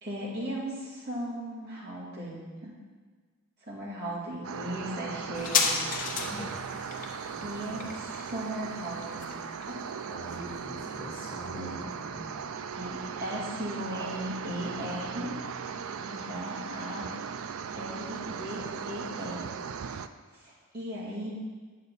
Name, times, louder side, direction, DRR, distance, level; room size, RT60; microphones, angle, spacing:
voice 1, 0.0-2.7 3.7-5.8 7.4-9.4 9.6-9.8 11.6-11.7 12.8-15.3 16.0-17.1 17.7-19.5 20.3-21.3, right 1 dB, 50° right, -7 dB, 2.6 m, -37 dB
sound 1, 4.4-20.1, right 6 dB, 75° right, 0.4 m, -38 dB
sound 2, 5.3-12.4 12.7-12.8, left 5 dB, 40° left, 0.9 m, -34 dB
voice 2, 6.1-6.6 7.3-7.9 10.1-12.6, left 1 dB, 20° left, -7 dB, 1.7 m, -43 dB
8.9 x 6.6 x 4.2 m, 1.5 s
head